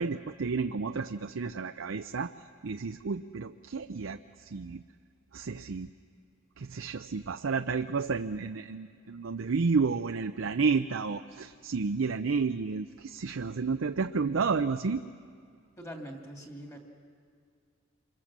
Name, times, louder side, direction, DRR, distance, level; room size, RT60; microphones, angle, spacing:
voice 1, 0.0-2.3 2.6-4.2 4.5-4.8 5.3-5.9 6.6-15.0, right 4 dB, 75° right, 8 dB, 0.6 m, -31 dB
voice 2, 15.8-16.8, equal, 15° left, 2 dB, 2.6 m, -43 dB
27.0 x 24.0 x 7.4 m, 2.2 s
head